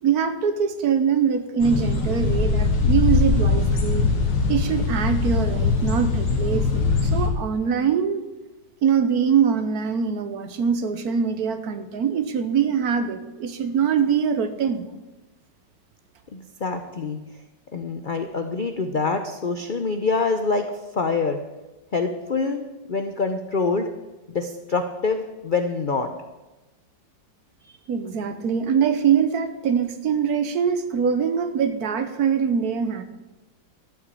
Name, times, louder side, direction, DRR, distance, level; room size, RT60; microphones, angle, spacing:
voice 1, 0.0-4.1 4.5-8.2 8.8-14.8 27.9-33.0, right 7 dB, 65° right, 10 dB, 1.2 m, -23 dB
sound 1, 1.6-7.3, left 4 dB, 90° left, 2.4 m, -21 dB
voice 2, 16.3-17.2 17.7-20.7 20.9-21.4 21.9-23.9 24.3-26.1, left 4 dB, 65° left, 6 dB, 0.4 m, -25 dB
12.5 x 6.1 x 8.4 m, 1.1 s
omnidirectional pair, 2.0 m